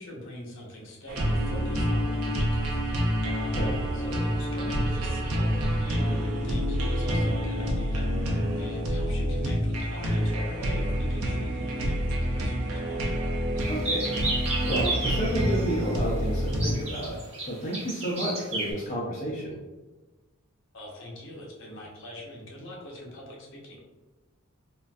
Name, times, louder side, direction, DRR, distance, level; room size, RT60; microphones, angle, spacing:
voice 1, 0.0-3.1 3.9-13.0 20.7-23.8, left 1 dB, 60° left, -2 dB, 0.8 m, -43 dB
sound 1, 1.1-16.7, equal, 90° right, 0.6 m, -27 dB
sound 2, 13.6-15.7 16.5-18.7, right 2 dB, 30° right, 1.1 m, -32 dB
voice 2, 13.7-14.1 14.6-17.2 17.5-19.6, right 1 dB, 35° left, -5 dB, 0.5 m, -31 dB
3.7 x 2.5 x 2.3 m, 1.2 s
head